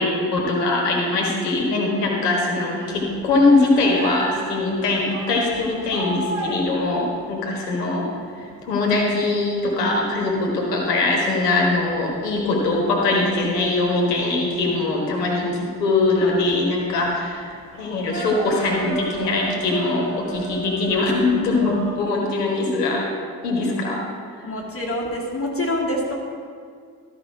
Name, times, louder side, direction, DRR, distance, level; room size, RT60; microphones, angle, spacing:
voice 1, 0.0-8.1 8.4-17.5 17.8-23.1 23.4-24.0 24.4-24.5, left 2 dB, 80° left, 0 dB, 1.4 m, -22 dB
Datse Match - Bhutan, 2.8-8.0 8.4-8.5 8.8-22.0, right 2 dB, 65° right, 2.0 m, -35 dB
voice 2, 24.4-26.1, left 1 dB, 30° left, -3 dB, 2.3 m, -26 dB
13.0 x 5.1 x 4.7 m, 2.1 s
figure-of-eight pair, 40°, 47 cm